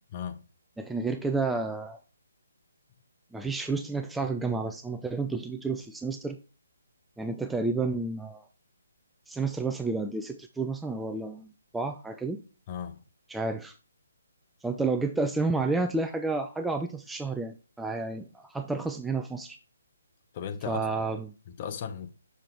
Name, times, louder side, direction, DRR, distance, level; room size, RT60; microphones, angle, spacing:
voice 1, 0.1-0.4 12.7-13.0 20.3-21.1 21.5-22.1, left 7 dB, 30° left, 0.7 m, -36 dB
voice 2, 0.8-2.0 3.3-6.4 7.2-8.5 9.3-12.4 13.3-13.7 14.6-19.6 20.7-21.3, right 3 dB, 5° right, 0.3 m, -30 dB
6.5 x 3.7 x 4.6 m
figure-of-eight pair, 140°, 0 cm